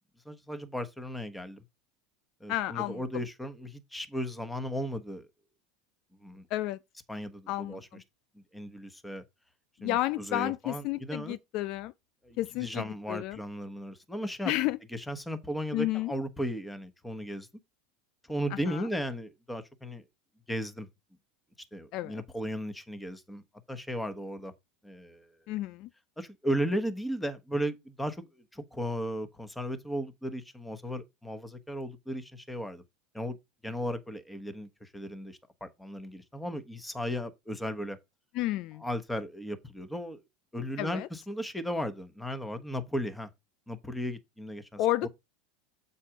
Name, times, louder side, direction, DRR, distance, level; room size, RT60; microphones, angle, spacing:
voice 1, 0.2-1.6 2.4-5.3 6.2-6.5 7.1-7.9 8.5-9.2 9.8-11.4 12.2-14.5 14.9-17.5 18.3-20.0 20.5-20.9 21.7-23.4 23.7-24.5 24.8-25.3 26.2-28.2 28.5-32.8 33.1-33.4 33.6-38.0 38.8-40.2 40.5-43.3 43.7-45.1, equal, 5° left, 1.2 m, -36 dB
voice 2, 2.5-3.0 6.5-6.8 7.5-8.0 9.8-11.9 12.4-13.4 14.5-14.8 15.7-16.1 18.5-18.9 21.9-22.2 25.5-25.9 38.3-38.8 40.8-41.1 44.8-45.1, left 16 dB, 55° left, 0.3 m, -31 dB
7.4 x 4.2 x 5.1 m
hypercardioid pair, 100°, 0 cm